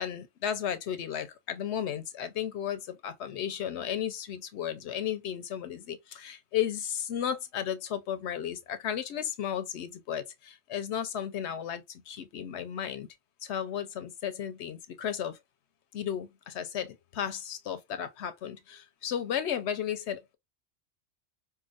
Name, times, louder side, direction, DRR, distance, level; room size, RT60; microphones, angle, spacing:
voice 1, 0.0-13.1 13.4-15.4 15.9-20.4, left 9 dB, 70° left, 0.8 m, -34 dB
4.7 x 2.3 x 2.3 m
omnidirectional pair, 1.3 m